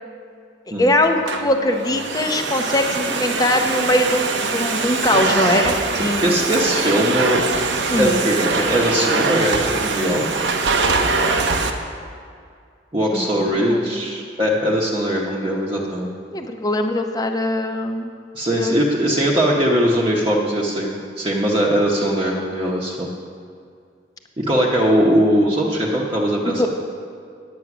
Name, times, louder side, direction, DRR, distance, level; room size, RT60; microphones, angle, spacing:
voice 1, 0.8-6.3 7.9-8.2 13.1-14.0 16.3-18.1 18.6-18.8 26.4-26.7, left 1 dB, 20° left, 5 dB, 0.7 m, -21 dB
Domestic sounds home sounds, 1.0-11.7, right 3 dB, 85° right, 0.9 m, -22 dB
voice 2, 5.9-7.4 8.0-10.3 12.9-16.1 18.3-23.1 24.4-26.7, equal, 30° right, -4 dB, 1.0 m, -20 dB
9.6 x 8.7 x 6.1 m, 2.3 s
head